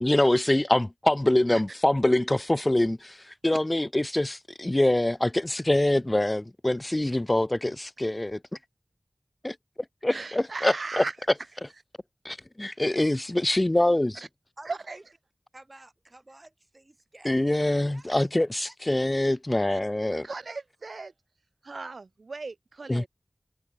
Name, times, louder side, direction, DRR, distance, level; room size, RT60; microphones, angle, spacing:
voice 1, 0.0-8.4 9.4-9.6 10.0-11.0 12.2-14.2 17.2-20.3 22.9-23.1, left 1 dB, 30° left, 0.6 m, -24 dB
voice 2, 10.1-11.2 14.1-14.3 14.7-15.0 18.1-18.2 19.7-19.8 20.2-21.1 21.6-23.1, right 3 dB, 85° right, 5.5 m, -37 dB
voice 3, 14.6-15.0 15.5-18.1 18.7-18.8, right 2 dB, 40° right, 5.6 m, -50 dB
wide cardioid pair, 50°, 0 cm